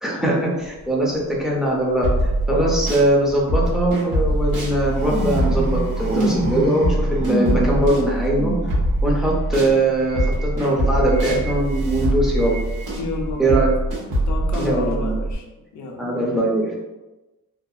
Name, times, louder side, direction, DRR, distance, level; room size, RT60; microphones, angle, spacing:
voice 1, 0.0-2.0 2.5-8.5 9.0-12.5 13.4-13.7 14.6-15.1 16.0-16.7, right 1 dB, ahead, -4 dB, 0.5 m, -21 dB
sound 1, 0.6-0.8 1.9-2.4 3.0-3.4 4.2-13.7, right 1 dB, 50° right, 0.6 m, -29 dB
sound 2, 2.0-3.1 3.5-9.7 10.1-15.4, right 1 dB, 75° right, 1.1 m, -23 dB
voice 2, 13.0-13.7 14.3-15.4 15.7-16.0, left 3 dB, 55° left, 1 dB, 0.5 m, -30 dB
2.7 x 2.4 x 2.3 m, 1.1 s
cardioid pair, 145°, 36 cm